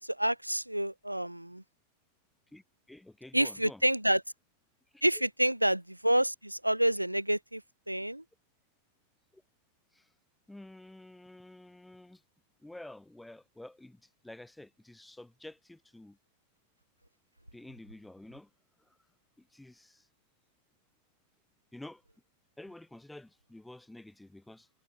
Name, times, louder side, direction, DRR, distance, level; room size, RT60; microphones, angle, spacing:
voice 1, 0.0-1.6 3.3-4.2 5.0-7.6 7.9-8.2, right 1 dB, 90° right, 0.5 m, -28 dB
voice 2, 2.5-3.8 4.9-5.0 9.3-9.4 9.9-10.1 10.5-12.2 12.6-16.2 17.5-18.5 18.8-19.0 19.4-20.1 21.7-22.0 22.6-24.7, left 1 dB, 5° left, 0.7 m, -50 dB
figure-of-eight pair, 90°, 0 cm